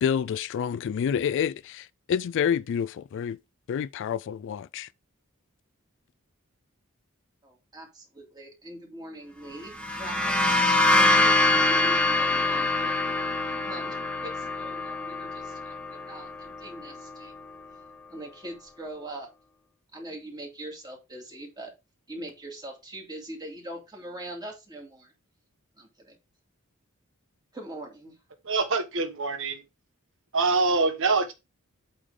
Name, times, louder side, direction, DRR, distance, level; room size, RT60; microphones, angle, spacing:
voice 1, 0.0-3.4 3.7-4.9, left 8 dB, 55° left, 0.3 m, -28 dB
voice 2, 7.4-12.9 13.6-17.3 18.1-19.3 19.9-21.7 22.1-25.1 25.8-26.2 27.5-28.1, right 1 dB, 20° right, 2.6 m, -42 dB
sound 1, 9.7-17.3, left 2 dB, 5° left, 1.1 m, -25 dB
voice 3, 28.4-29.6 30.3-31.3, right 3 dB, 60° right, 1.1 m, -24 dB
8.4 x 3.8 x 4.9 m
head